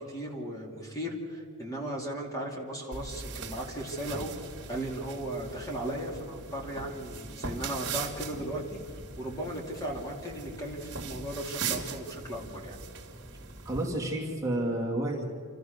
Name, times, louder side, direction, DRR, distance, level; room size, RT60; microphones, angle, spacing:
voice 1, 0.0-12.8, right 1 dB, 15° left, -1 dB, 2.9 m, -36 dB
sound 1, 2.9-13.9, right 5 dB, 55° right, 2.5 m, -40 dB
voice 2, 13.6-15.3, right 1 dB, 15° right, -3 dB, 2.6 m, -30 dB
28.0 x 14.0 x 6.7 m, 2.3 s
head